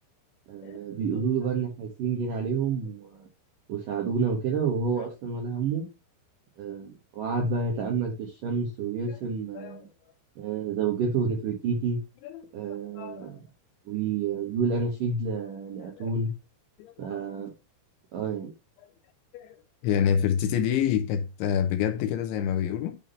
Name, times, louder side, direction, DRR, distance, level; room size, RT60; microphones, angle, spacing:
voice 1, 0.5-3.3 3.7-5.9 6.6-9.9 10.4-12.0 12.5-13.4 13.9-16.3 17.0-17.5 18.1-18.5, right 5 dB, 70° right, 2.1 m, -29 dB
voice 2, 12.7-13.4 15.8-16.1 16.8-17.1 19.3-19.6 19.8-23.0, left 8 dB, 75° left, 3.0 m, -28 dB
11.0 x 3.7 x 5.6 m
omnidirectional pair, 5.8 m